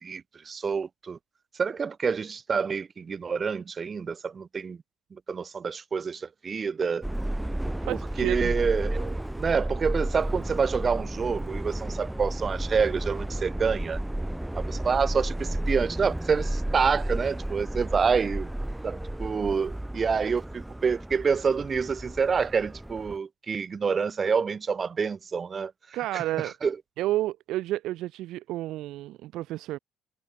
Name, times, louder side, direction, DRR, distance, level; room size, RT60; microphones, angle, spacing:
voice 1, 0.0-1.2 1.6-4.8 5.3-7.0 7.9-14.0 14.6-18.5 18.8-25.7 26.1-26.8, right 5 dB, 40° right, 1.9 m, -27 dB
Subway metro underground, 7.0-23.2, right 1 dB, 10° right, 1.0 m, -32 dB
voice 2, 7.9-8.5 25.9-26.5 27.0-29.8, right 15 dB, 70° right, 0.4 m, -30 dB
hypercardioid pair, 55°, 0 cm